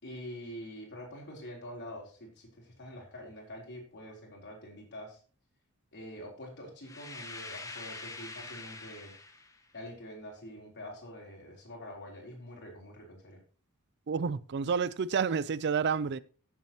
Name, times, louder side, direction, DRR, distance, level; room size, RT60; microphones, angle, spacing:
voice 1, 0.0-5.2 5.9-9.1 9.7-13.4, equal, 50° left, 4.2 m, -45 dB
sound 1, 6.8-9.6, left 3 dB, 15° left, 1.1 m, -44 dB
voice 2, 14.1-16.2, right 6 dB, 50° right, 0.4 m, -29 dB
15.5 x 7.4 x 2.9 m
head